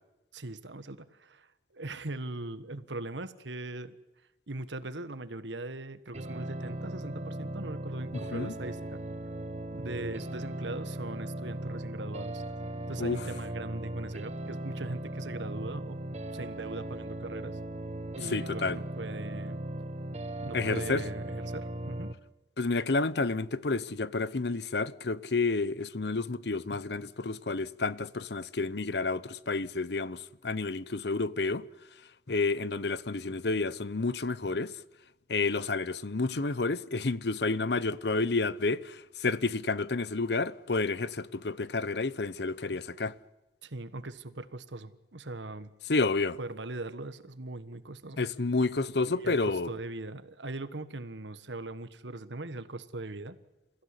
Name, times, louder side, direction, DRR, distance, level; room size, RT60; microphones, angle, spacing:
voice 1, 0.3-4.0 4.5-9.0 9.7-16.0 16.3-17.6 18.1-19.6 20.4-22.1 43.6-45.7 46.4-48.2 49.1-53.4, right 2 dB, 80° right, 1.4 m, -40 dB
sound 1, 6.1-22.1, right 1 dB, 40° right, 1.3 m, -38 dB
voice 2, 18.2-18.8 20.5-21.0 22.6-31.6 32.3-34.7 35.3-43.1 45.9-46.4 48.2-49.7, left 3 dB, 65° left, 0.9 m, -30 dB
28.0 x 16.0 x 9.9 m
head